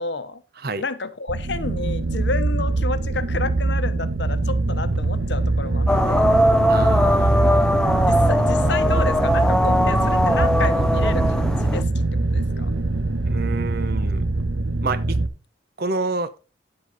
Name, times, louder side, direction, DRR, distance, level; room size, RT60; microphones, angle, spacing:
voice 1, 0.0-0.4 0.8-6.4 8.1-12.1 12.3-12.7, left 3 dB, 60° left, 0.9 m, -30 dB
sound 1, 1.3-15.3, right 2 dB, 85° right, 1.1 m, -23 dB
sound 2, 5.9-11.8, equal, 5° left, 0.5 m, -20 dB
voice 2, 6.7-8.0 13.3-14.2 14.8-15.2 15.8-16.3, right 3 dB, 50° right, 0.8 m, -28 dB
10.5 x 7.9 x 4.0 m
head